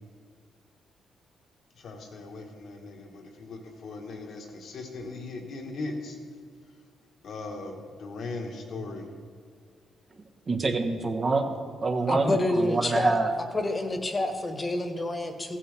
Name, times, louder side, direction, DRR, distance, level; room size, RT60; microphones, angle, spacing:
voice 1, 1.7-6.2 7.2-9.1, left 3 dB, 70° left, 3 dB, 1.6 m, -38 dB
voice 2, 10.5-11.5 11.8-13.3, right 3 dB, 45° right, 3 dB, 1.3 m, -26 dB
voice 3, 12.1-13.2 13.5-15.6, left 1 dB, 30° left, 6 dB, 1.4 m, -28 dB
16.0 x 7.7 x 3.5 m, 2.1 s
supercardioid pair, 55°, 0 cm